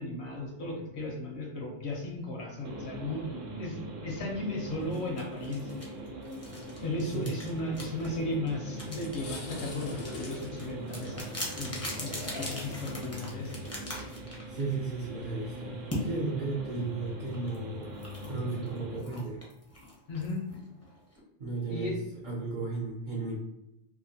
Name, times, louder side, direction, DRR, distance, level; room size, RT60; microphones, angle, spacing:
voice 1, 0.0-5.7 6.8-12.1 12.4-13.6 20.1-20.4 21.7-22.0, left 2 dB, 65° left, 0 dB, 1.0 m, -36 dB
sound 1, 2.6-19.0, right 1 dB, 85° right, 1.0 m, -42 dB
sound 2, 4.9-14.8 15.9-16.1 17.3-21.2, left 1 dB, 20° left, 0.5 m, -42 dB
sound 3, 8.4-8.5 8.9-16.2, left 2 dB, 90° left, 1.1 m, -45 dB
voice 2, 14.5-15.7 16.0-18.0 18.3-19.4 21.4-22.0 22.2-23.5, right 3 dB, 55° right, -4 dB, 0.5 m, -34 dB
2.8 x 2.5 x 2.7 m, 0.86 s
omnidirectional pair, 1.3 m